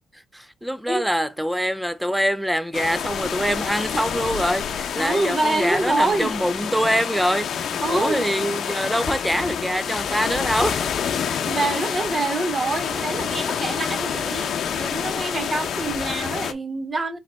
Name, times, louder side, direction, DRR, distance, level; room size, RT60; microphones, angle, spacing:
voice 1, 0.3-10.8, equal, 5° right, 0.5 m, -24 dB
sound 1, 2.7-16.5, left 8 dB, 65° left, 0.7 m, -28 dB
voice 2, 5.0-6.3 7.8-8.3 11.3-17.2, right 2 dB, 30° right, 1.0 m, -26 dB
4.0 x 3.2 x 3.9 m
cardioid pair, 80°, 0 cm